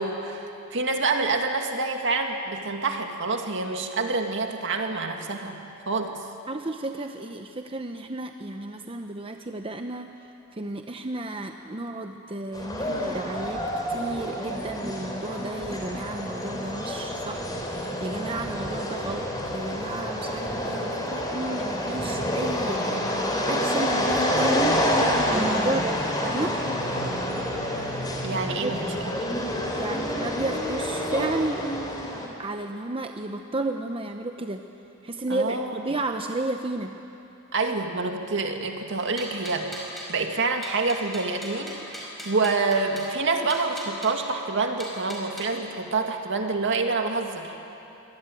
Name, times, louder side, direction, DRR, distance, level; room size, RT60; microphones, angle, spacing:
voice 1, 0.0-5.6 5.9-6.2 28.2-28.9 29.3-29.4 35.3-35.8 37.5-47.6, right 3 dB, 60° right, 4 dB, 2.2 m, -27 dB
voice 2, 6.5-23.0 23.5-24.8 25.1-26.6 28.3-28.8 29.8-31.7 32.4-34.6 35.0-36.9, right 2 dB, 25° right, 5 dB, 0.8 m, -32 dB
sound 1, 12.5-32.3, equal, 20° left, 3.5 m, -28 dB
sound 2, 39.0-40.2 40.6-43.1 43.5-44.1 44.8-45.5, equal, ahead, 5.1 m, -39 dB
24.0 x 19.5 x 9.1 m, 2.9 s
head